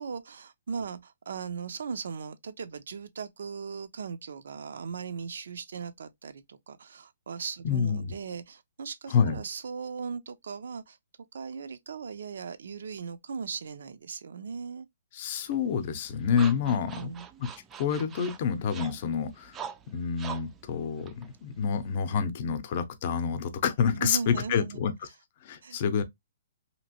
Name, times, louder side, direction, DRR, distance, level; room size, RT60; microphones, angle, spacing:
voice 1, 0.0-11.0 11.3-14.9 16.7-17.3 24.0-24.8 25.6-25.8, right 5 dB, 70° right, 0.5 m, -38 dB
voice 2, 7.6-8.1 9.1-9.4 15.1-17.1 17.8-19.6 19.9-24.9 25.4-26.0, left 7 dB, 40° left, 0.6 m, -28 dB
sound 1, 15.5-22.0, right 8 dB, 15° right, 0.3 m, -45 dB
2.9 x 2.5 x 2.8 m
hypercardioid pair, 150°, 0 cm